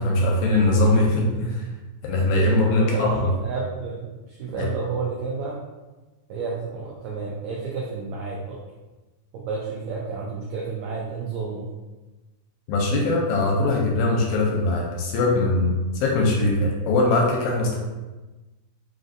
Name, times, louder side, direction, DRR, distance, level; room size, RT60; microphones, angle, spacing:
voice 1, 0.0-1.6 2.0-3.3 4.6-4.7 12.7-17.8, left 2 dB, 80° left, -1 dB, 1.7 m, -21 dB
voice 2, 2.6-5.6 6.3-8.6 9.3-11.7, right 4 dB, 80° right, -4 dB, 1.6 m, -31 dB
5.0 x 2.5 x 2.6 m, 1.1 s
omnidirectional pair, 3.7 m